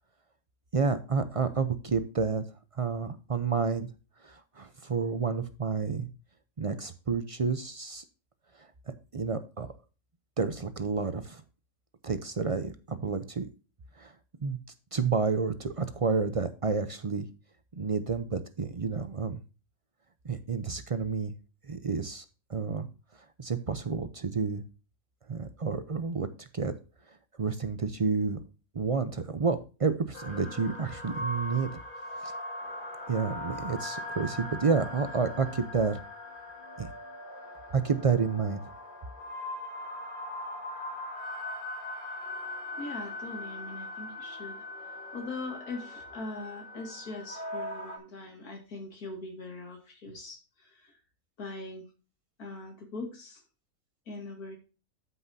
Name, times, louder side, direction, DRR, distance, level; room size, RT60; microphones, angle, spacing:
voice 1, 0.7-2.4 2.8-3.9 4.2-6.1 6.6-8.0 8.6-9.7 10.4-11.4 12.0-13.5 14.0-14.1 14.4-14.6 14.9-17.3 17.7-19.4 20.2-21.3 21.6-22.2 22.5-22.9 23.4-24.6 25.3-26.7 27.4-28.4 28.7-31.7 32.2-32.3 33.1-36.0 36.8-36.9 37.7-38.6, right 5 dB, 55° right, 11 dB, 0.3 m, -30 dB
sound 1, 30.1-48.0, left 1 dB, 35° left, 2.0 m, -40 dB
voice 2, 42.8-50.9 51.4-51.9 52.4-53.4 54.1-54.6, left 3 dB, 85° left, 3 dB, 2.6 m, -41 dB
13.5 x 5.7 x 2.7 m, 0.32 s
omnidirectional pair, 1.5 m